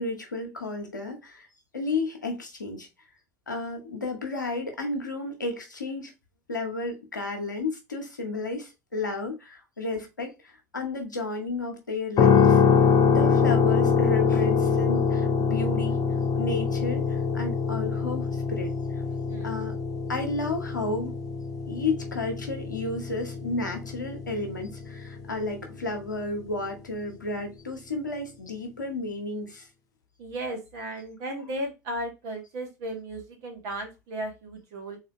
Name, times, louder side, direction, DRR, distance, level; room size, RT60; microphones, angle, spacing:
voice 1, 0.0-1.5 1.7-2.9 3.5-6.1 6.5-12.6 13.1-16.0 16.3-18.7 19.4-19.8 20.1-21.1 21.7-29.7, left 3 dB, 80° left, 1.0 m, -32 dB
sound 1, 12.2-26.2, left 6 dB, 40° left, 0.6 m, -24 dB
voice 2, 30.2-35.0, right 1 dB, 50° right, 1.9 m, -35 dB
3.8 x 3.2 x 2.9 m
figure-of-eight pair, 70°, 10 cm